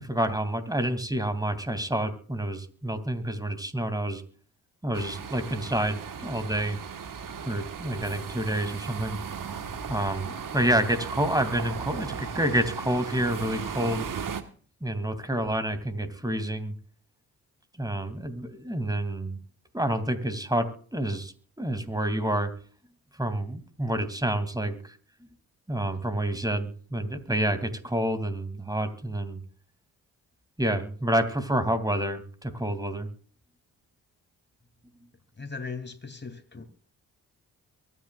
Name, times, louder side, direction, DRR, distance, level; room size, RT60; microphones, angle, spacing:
voice 1, 0.0-4.2 4.8-6.8 7.4-9.2 9.9-14.1 14.8-16.7 17.8-19.4 19.7-22.5 23.2-24.8 25.7-29.4 30.6-33.1, right 1 dB, 10° right, 10 dB, 2.7 m, -28 dB
sound 1, 4.9-14.4, right 7 dB, 55° right, 1.6 m, -36 dB
voice 2, 35.4-36.6, left 4 dB, 25° left, 8 dB, 2.9 m, -38 dB
23.5 x 9.8 x 2.5 m, 0.44 s
supercardioid pair, 45°, 40 cm